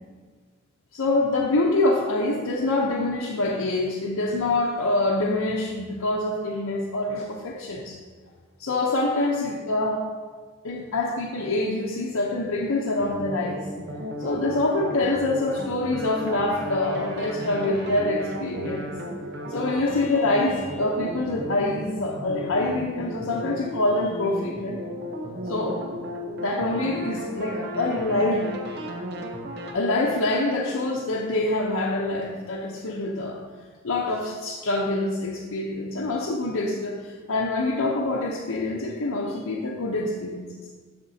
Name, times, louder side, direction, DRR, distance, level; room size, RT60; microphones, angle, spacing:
voice 1, 0.9-8.0 8.6-10.0 10.6-13.6 14.2-18.9 19.5-24.8 25.5-25.8 26.4-28.5 29.7-33.4 33.8-40.5, left 2 dB, 85° left, -3 dB, 0.7 m, -25 dB
sound 1, 13.0-29.7, equal, 50° right, 0.7 m, -35 dB
7.8 x 6.6 x 2.7 m, 1.5 s
head